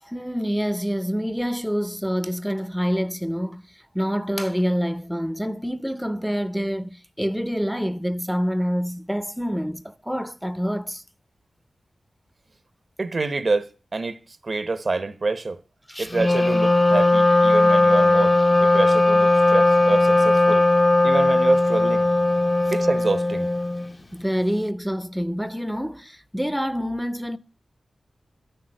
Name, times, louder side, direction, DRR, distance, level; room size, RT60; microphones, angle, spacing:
voice 1, 0.0-11.0 15.9-16.1 24.1-27.4, equal, ahead, 0.7 m, -27 dB
voice 2, 13.0-15.6 16.0-20.7 21.0-22.0 22.7-23.5, right 3 dB, 55° right, 1.1 m, -27 dB
Wind instrument woodwind instrument, 16.1-24.0, left 2 dB, 40° left, 0.8 m, -18 dB
12.5 x 6.9 x 7.6 m
cardioid pair, 45°, 0 cm